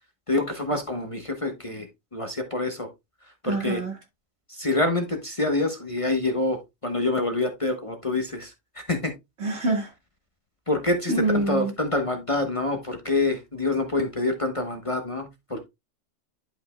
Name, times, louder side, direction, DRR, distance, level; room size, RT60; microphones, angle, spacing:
voice 1, 0.3-1.9 2.1-2.9 3.4-3.8 4.5-8.5 8.9-9.1 10.7-15.7, left 2 dB, 30° left, 1.0 m, -26 dB
voice 2, 3.4-3.9 9.4-9.9 11.1-11.7, right 2 dB, 60° right, 2.1 m, -25 dB
11.5 x 5.3 x 2.2 m
omnidirectional pair, 1.3 m